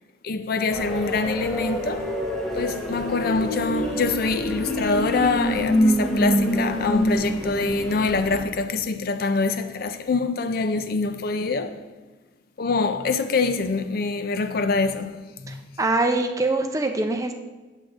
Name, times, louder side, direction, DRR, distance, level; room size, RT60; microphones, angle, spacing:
voice 1, 0.2-2.1 2.5-11.8 12.6-15.6, left 4 dB, 50° left, 0.4 m, -25 dB
sound 1, 0.7-8.4, equal, ahead, 1.0 m, -26 dB
voice 2, 15.5-17.3, right 2 dB, 15° right, 0.5 m, -24 dB
9.8 x 8.1 x 2.5 m
head